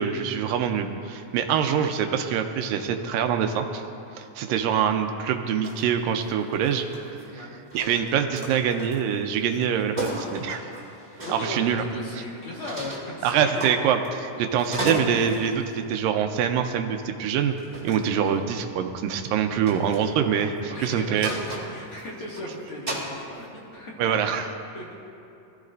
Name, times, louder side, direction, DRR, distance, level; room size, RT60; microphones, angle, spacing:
voice 1, 0.0-3.8 4.2-7.2 7.7-10.6 11.3-11.9 12.1-12.2 13.2-17.6 17.8-21.3 24.0-24.5, right 8 dB, 90° right, 6 dB, 2.4 m, -25 dB
sound 1, 5.6-5.8 6.1-7.3 7.7-9.1 9.5-9.6 10.0-11.5 12.6-13.1 13.6-14.3 14.5-15.5 16.6-16.8 17.6-18.1 19.7-20.0 21.2-22.4 22.9-23.1, right 1 dB, 15° right, 1.8 m, -33 dB
voice 2, 11.2-13.8 20.7-23.9 24.7-24.9, left 1 dB, 45° left, -4 dB, 2.3 m, -37 dB
21.5 x 14.0 x 2.6 m, 2.7 s
omnidirectional pair, 4.0 m